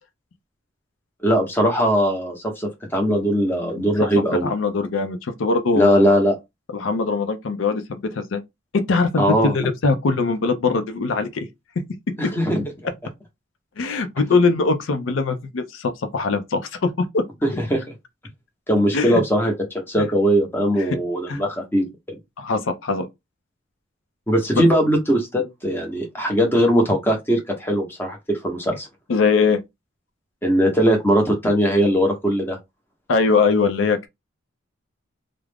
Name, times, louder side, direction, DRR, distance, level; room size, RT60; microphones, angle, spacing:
voice 1, 1.2-4.5 5.7-6.3 9.2-9.5 12.2-12.6 17.6-17.8 18.7-19.5 19.9-22.2 24.3-28.9 30.4-32.6, equal, 10° left, 0.7 m, -20 dB
voice 2, 4.4-6.2 6.7-8.4 8.9-11.5 12.2-12.3 13.8-17.2 18.9-19.2 21.3-21.4 22.4-23.1 29.1-29.6 33.1-34.1, left 4 dB, 80° left, 0.5 m, -21 dB
2.3 x 2.0 x 3.3 m
head